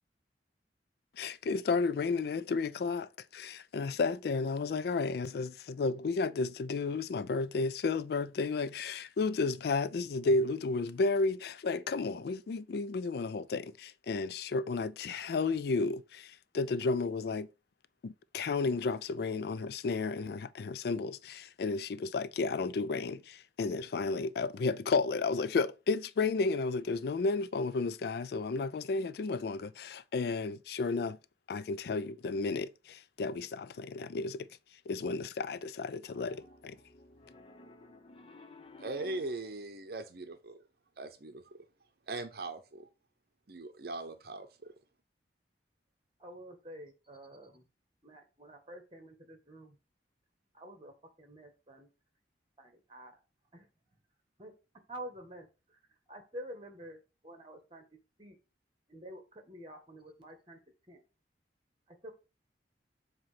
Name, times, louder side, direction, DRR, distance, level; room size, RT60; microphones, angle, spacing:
voice 1, 1.2-17.5 18.0-31.2 31.5-34.5 34.9-36.8, left 4 dB, 60° left, 0.4 m, -32 dB
Piano, 36.1-39.5, left 2 dB, 30° left, 0.8 m, -54 dB
voice 2, 38.8-40.6 41.0-41.6 42.1-42.9 43.5-44.7, right 2 dB, 60° right, 0.8 m, -40 dB
voice 3, 46.2-47.6 48.0-49.8 50.5-50.9 51.2-51.9 52.6-53.2 53.5-53.7 54.4-54.5 54.9-55.8 56.1-57.8 58.2-58.4 58.9-60.6 60.9-61.0 61.9-62.1, right 1 dB, 30° right, 1.7 m, -48 dB
7.6 x 3.0 x 5.8 m
head